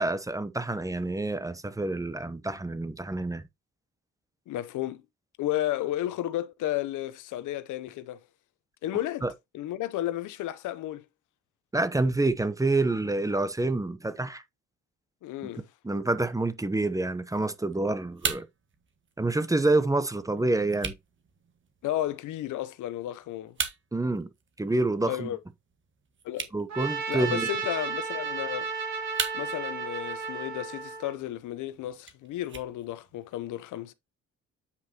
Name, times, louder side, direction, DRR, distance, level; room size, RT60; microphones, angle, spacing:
voice 1, 0.0-3.4 9.2-9.3 11.7-14.4 15.8-18.5 19.2-20.9 23.9-24.3 24.6-25.3 26.5-27.5, right 2 dB, 10° right, 0.8 m, -27 dB
voice 2, 4.5-5.0 5.4-8.2 8.8-9.3 9.5-11.1 15.2-15.6 21.8-23.6 25.0-25.4 26.2-26.5 27.1-28.7 29.3-33.9, left 13 dB, 80° left, 0.7 m, -33 dB
sound 1, 17.3-33.3, right 6 dB, 40° right, 1.4 m, -41 dB
Trumpet, 26.7-31.1, right 5 dB, 65° right, 3.5 m, -33 dB
8.5 x 4.8 x 2.8 m
cardioid pair, 90°, 30 cm